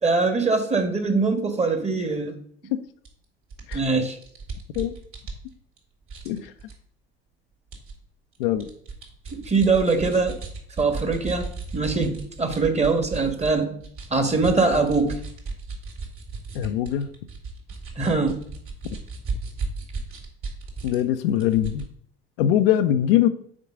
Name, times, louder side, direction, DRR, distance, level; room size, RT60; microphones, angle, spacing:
voice 1, 0.0-2.4 3.7-4.2 9.3-10.4 10.8-13.8 14.1-15.2 18.0-18.4, right 3 dB, 20° right, 7 dB, 1.6 m, -22 dB
sound 1, 3.1-3.2 3.5-5.8 6.1-6.7 7.7-7.9 8.3-13.5 13.8-21.0 21.3-21.9, right 4 dB, 45° right, 2.7 m, -35 dB
voice 2, 16.5-17.1 18.8-19.0 20.8-21.9 22.4-23.3, left 11 dB, 70° left, 9 dB, 0.7 m, -22 dB
6.1 x 4.7 x 6.5 m, 0.63 s
hypercardioid pair, 65°, 30 cm